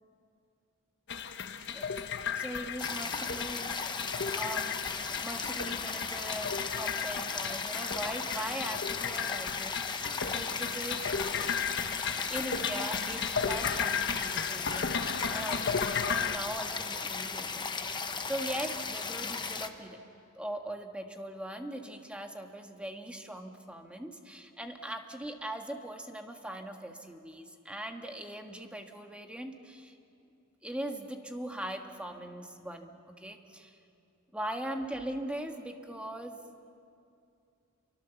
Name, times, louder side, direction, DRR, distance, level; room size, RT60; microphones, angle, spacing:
sound 1, 1.1-16.4, left 6 dB, 55° left, 1.1 m, -35 dB
voice 1, 1.7-4.8 5.1-11.1 12.3-15.0 15.3-20.0 20.3-30.0 30.6-33.8 34.3-36.4, right 1 dB, 5° right, 4 dB, 1.5 m, -40 dB
sound 2, 2.8-19.7, left 5 dB, 20° left, 1.0 m, -36 dB
28.5 x 24.0 x 7.1 m, 2.6 s
head